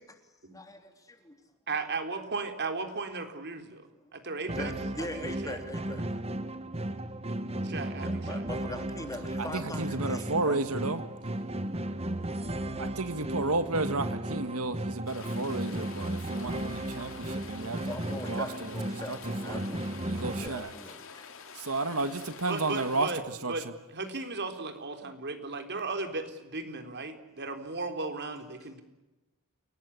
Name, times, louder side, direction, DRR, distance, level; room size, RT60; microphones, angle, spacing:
voice 1, 0.5-1.3 4.0-4.2 4.5-6.0 8.0-10.6 17.9-20.0 20.4-21.2, left 1 dB, 15° left, 6 dB, 3.4 m, -41 dB
voice 2, 1.7-4.7 5.0-5.6 7.6-8.4 22.5-23.2 23.5-23.6 23.9-28.8, right 3 dB, 50° right, 6 dB, 3.8 m, -36 dB
sound 1, 4.5-20.5, right 1 dB, 30° right, 1.7 m, -35 dB
voice 3, 9.4-11.0 12.8-17.9 18.2-18.7 19.1-19.7 20.1-20.7 21.6-23.7, right 3 dB, 75° right, 10 dB, 1.7 m, -32 dB
Rain, 15.1-23.1, left 6 dB, 65° left, 3.3 m, -47 dB
29.0 x 18.5 x 10.0 m, 1.1 s
head